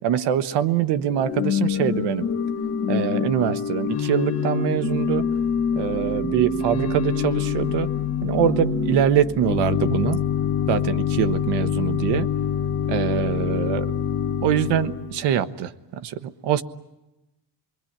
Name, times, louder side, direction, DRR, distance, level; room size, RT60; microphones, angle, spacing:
voice 1, 0.0-2.3 2.9-5.3 5.8-7.9 8.2-10.2 10.7-12.3 12.9-13.9 14.4-16.6, right 9 dB, 75° right, 12 dB, 1.3 m, -23 dB
Organ / Church bell, 1.1-15.2, left 7 dB, 35° left, 1.5 m, -25 dB
28.5 x 22.0 x 8.8 m, 0.99 s
cardioid pair, 165°, 42 cm